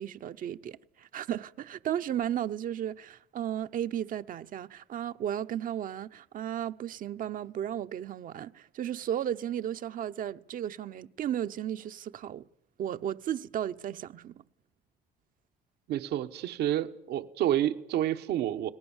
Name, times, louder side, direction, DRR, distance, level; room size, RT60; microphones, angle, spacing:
voice 1, 0.0-12.4 12.8-14.4, right 10 dB, 55° right, 0.8 m, -34 dB
voice 2, 15.9-18.7, right 12 dB, 75° right, 1.2 m, -29 dB
30.0 x 19.0 x 7.3 m
cardioid pair, 110°, 17 cm